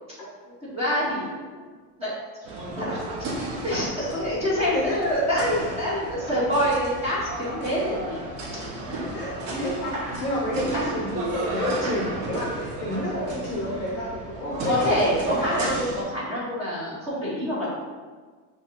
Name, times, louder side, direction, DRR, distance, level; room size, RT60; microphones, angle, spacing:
voice 1, 0.7-1.4 2.0-2.1 2.5-3.0 3.4-8.2 8.7-9.4 14.7-17.7, equal, 15° right, -8 dB, 0.7 m, -26 dB
sound 1, 2.4-16.0, right 2 dB, 60° right, 0.9 m, -34 dB
voice 2, 4.6-5.0 9.1-12.5 12.8-15.7, equal, 30° left, -4 dB, 0.6 m, -29 dB
5.8 x 2.8 x 2.4 m, 1.5 s
cardioid pair, 180°, 42 cm